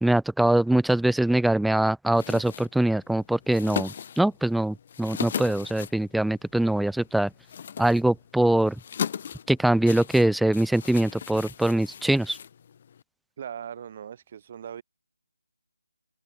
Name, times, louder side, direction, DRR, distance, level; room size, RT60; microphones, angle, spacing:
voice 1, 0.0-7.3 7.8-8.8 9.5-12.4, right 1 dB, ahead, 0.9 m, -23 dB
sound 1, 2.1-13.0, left 8 dB, 35° left, 2.5 m, -38 dB
voice 2, 13.4-14.8, right 8 dB, 30° right, 4.3 m, -39 dB
open air
figure-of-eight pair, 155°, 0 cm